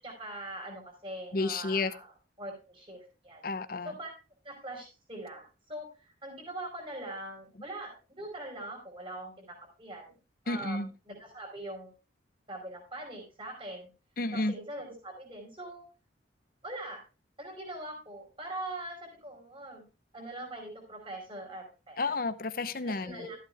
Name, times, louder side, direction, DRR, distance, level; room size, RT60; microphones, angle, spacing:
voice 1, 0.0-2.1 2.4-3.4 3.8-4.1 4.4-10.1 10.4-11.9 12.5-13.9 14.3-15.8 16.6-17.0 17.4-19.9 20.1-22.1 22.8-23.4, right 1 dB, 25° right, 4.9 m, -42 dB
voice 2, 1.3-1.9 3.4-3.9 10.5-10.9 14.2-14.5 22.0-23.3, left 3 dB, 50° left, 0.8 m, -31 dB
13.5 x 8.4 x 3.4 m
head